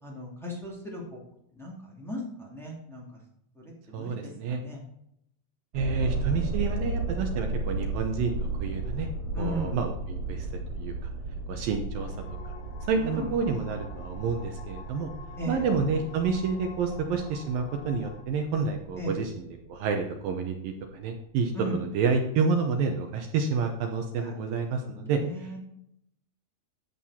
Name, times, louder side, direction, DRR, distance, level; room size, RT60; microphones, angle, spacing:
voice 1, 0.0-1.2 1.5-3.0 3.5-4.8 9.3-9.8 13.0-13.3 15.4-15.7 19.0-19.1 21.5-21.8 24.1-25.6, equal, ahead, -4 dB, 1.5 m, -37 dB
voice 2, 3.9-4.6 5.7-8.3 8.6-9.1 9.4-10.5 10.8-10.9 11.5-12.1 12.9-13.0 13.3-15.1 15.5-25.2, right 5 dB, 70° right, 4 dB, 2.2 m, -29 dB
sound 1, 5.7-19.9 20.5-20.6, right 3 dB, 35° right, 4.8 m, -35 dB
sound 2, 11.9-18.2, left 6 dB, 85° left, 3.8 m, -48 dB
11.0 x 7.5 x 4.3 m, 0.76 s
omnidirectional pair, 4.9 m